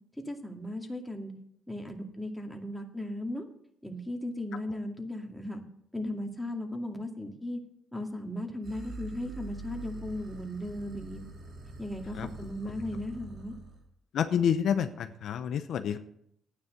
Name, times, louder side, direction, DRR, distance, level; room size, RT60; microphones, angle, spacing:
voice 1, 0.1-1.3 1.7-3.4 3.8-5.6 5.9-7.6 7.9-11.3 11.8-13.5, left 1 dB, 5° left, 2 dB, 2.2 m, -36 dB
sound 1, 8.6-13.8, right 3 dB, 65° right, 3.5 m, -45 dB
voice 2, 14.1-16.0, left 8 dB, 70° left, 9 dB, 0.7 m, -28 dB
11.5 x 9.6 x 6.7 m, 0.72 s
cardioid pair, 90°, 0 cm